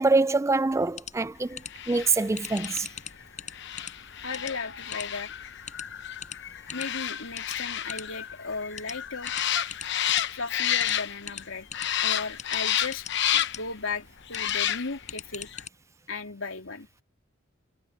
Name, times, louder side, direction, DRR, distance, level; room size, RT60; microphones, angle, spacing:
voice 1, 0.0-1.6 1.9-2.9, right 3 dB, 15° right, 0.4 m, -24 dB
sound 1, 0.7-15.7, left 8 dB, 40° left, 5.1 m, -44 dB
sound 2, 1.7-11.4 11.7-13.7 14.3-15.1 15.5-15.6, left 10 dB, 60° left, 0.9 m, -31 dB
voice 2, 4.2-5.3 6.7-9.3 10.3-11.7 12.0-13.1 13.3-15.5 16.1-16.9, left 4 dB, 85° left, 3.0 m, -36 dB
head